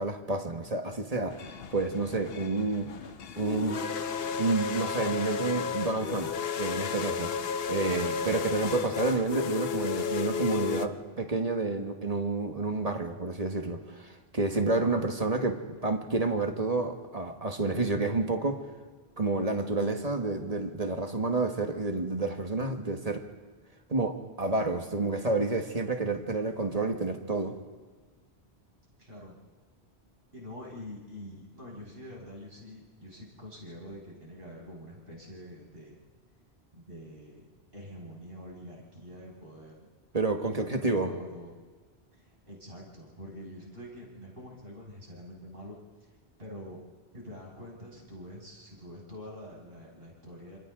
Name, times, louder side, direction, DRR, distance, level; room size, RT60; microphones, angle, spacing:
voice 1, 0.0-3.0 3.4-3.8 4.4-6.3 6.6-7.3 7.7-18.6 19.2-23.3 23.9-27.6 40.1-41.1, right 3 dB, 35° right, 4 dB, 1.6 m, -29 dB
sound 1, 1.3-10.9, left 6 dB, 65° left, 1.0 m, -33 dB
voice 2, 29.0-29.3 30.3-36.0 36.7-39.9 40.5-41.5 42.1-45.8 46.4-46.8 47.1-50.6, equal, 55° right, -3 dB, 6.3 m, -46 dB
29.0 x 27.0 x 3.9 m, 1.5 s
omnidirectional pair, 1.1 m